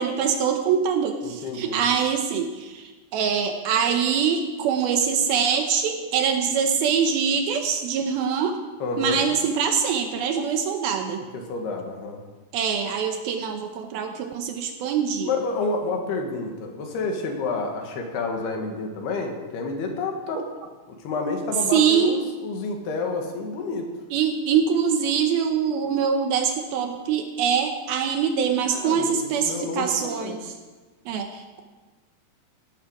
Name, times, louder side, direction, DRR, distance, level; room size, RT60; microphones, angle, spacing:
voice 1, 0.0-8.6 9.0-11.2 12.5-15.3 21.7-22.1 24.1-30.5 31.1-31.6, right 7 dB, 75° right, 5 dB, 2.5 m, -24 dB
voice 2, 1.2-1.8 8.8-9.3 11.3-12.2 15.2-20.5 20.9-23.9 28.7-30.4, left 3 dB, 70° left, 3 dB, 3.7 m, -29 dB
16.0 x 13.0 x 4.8 m, 1.2 s
omnidirectional pair, 4.8 m